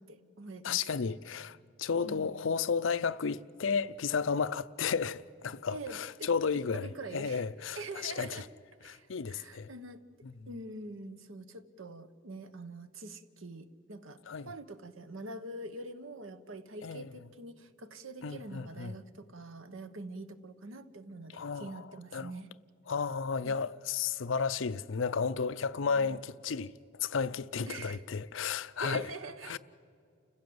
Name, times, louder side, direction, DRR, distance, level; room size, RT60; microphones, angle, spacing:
voice 1, 0.0-0.8 2.0-2.5 5.7-7.4 7.7-8.5 8.8-10.0 10.5-22.5 23.4-23.5 25.8-26.2 27.7-28.0 28.8-29.6, right 2 dB, 85° right, 1.1 m, -45 dB
voice 2, 0.6-8.3 8.8-9.7 14.3-14.5 16.8-17.1 18.2-18.9 21.3-21.8 22.1-22.3 22.9-26.7 27.0-29.1 29.5-29.6, left 5 dB, 75° left, 0.6 m, -33 dB
29.5 x 16.0 x 7.9 m
head